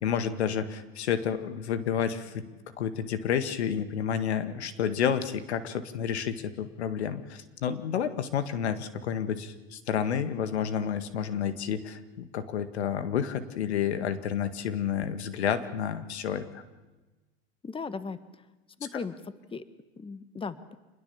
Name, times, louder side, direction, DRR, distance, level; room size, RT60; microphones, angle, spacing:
voice 1, 0.0-2.5 2.8-16.5, left 8 dB, 80° left, 10 dB, 1.9 m, -30 dB
voice 2, 17.6-18.2 18.8-19.6 20.0-20.8, left 4 dB, 15° left, 13 dB, 1.4 m, -37 dB
27.0 x 21.0 x 7.2 m, 1.2 s
hypercardioid pair, 95°, 32 cm